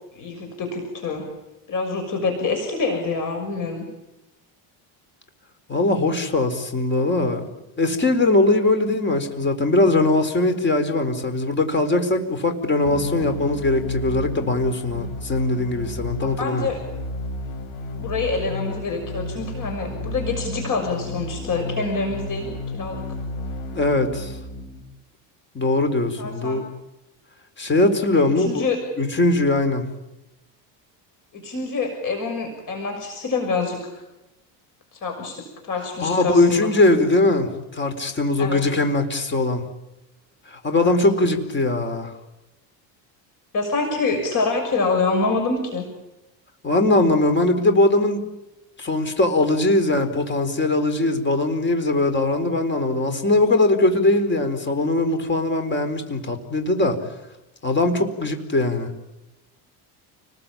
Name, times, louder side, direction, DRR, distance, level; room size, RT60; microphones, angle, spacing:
voice 1, 0.1-1.3 1.7-3.9 16.2-16.8 17.9-23.0 26.2-26.6 28.1-28.8 31.3-33.8 34.9-36.7 38.4-38.6 40.8-41.0 43.5-45.9, left 4 dB, 45° left, 4 dB, 6.4 m, -26 dB
voice 2, 5.7-7.5 7.8-16.7 23.7-24.4 25.5-26.6 27.6-28.7 29.0-29.9 36.0-39.6 40.5-42.1 46.6-48.3 48.8-57.0 57.6-58.9, left 2 dB, 25° left, 8 dB, 4.3 m, -21 dB
sound 1, 12.8-24.8, left 2 dB, 75° left, 6.5 m, -32 dB
29.5 x 20.5 x 8.9 m, 0.97 s
cardioid pair, 130°, 44 cm